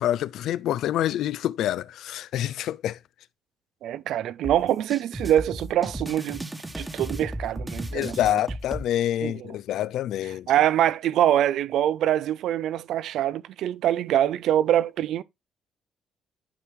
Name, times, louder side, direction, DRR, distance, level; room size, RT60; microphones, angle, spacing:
voice 1, 0.0-3.0 7.9-10.5, left 12 dB, 80° left, 0.4 m, -27 dB
voice 2, 3.8-6.5 6.8-8.4 9.2-9.5 10.5-15.2, right 11 dB, 80° right, 0.4 m, -24 dB
sound 1, 4.4-8.8, right 1 dB, 15° right, 1.2 m, -35 dB
9.7 x 4.7 x 3.5 m
cardioid pair, 90°, 0 cm